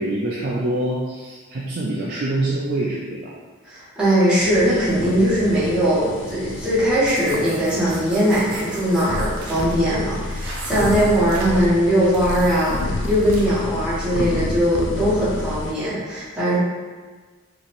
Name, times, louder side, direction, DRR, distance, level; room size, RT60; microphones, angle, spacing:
voice 1, 0.0-3.3 4.7-4.8 10.4-10.6, right 1 dB, 45° right, -5 dB, 0.4 m, -25 dB
voice 2, 3.6-16.6, equal, 5° right, -12 dB, 1.2 m, -20 dB
sound 1, 4.4-15.7, left 3 dB, 60° left, 0.3 m, -30 dB
sound 2, 7.0-13.6, right 2 dB, 90° right, 0.8 m, -39 dB
4.0 x 2.9 x 2.5 m, 1.4 s
head